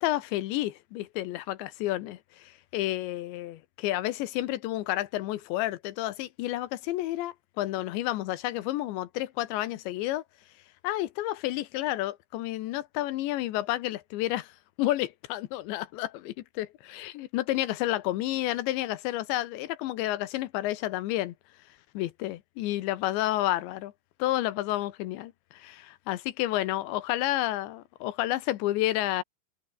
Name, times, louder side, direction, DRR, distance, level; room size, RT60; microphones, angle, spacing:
voice 1, 0.0-10.2 10.8-14.5 14.8-21.3 21.9-23.9 24.2-29.2, left 15 dB, 75° left, 3.1 m, -30 dB
omnidirectional pair, 5.7 m